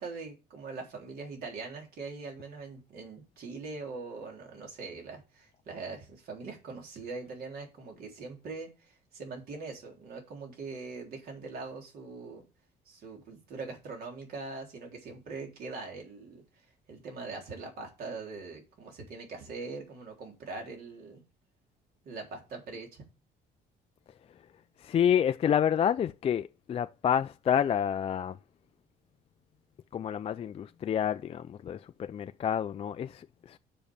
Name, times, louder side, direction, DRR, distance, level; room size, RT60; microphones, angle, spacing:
voice 1, 0.0-12.4 12.9-16.4 16.9-21.2 22.0-23.1, right 4 dB, 65° right, 3.7 m, -42 dB
voice 2, 24.8-28.4 29.9-33.6, left 9 dB, 35° left, 0.4 m, -29 dB
7.1 x 5.8 x 5.5 m
cardioid pair, 110°, 17 cm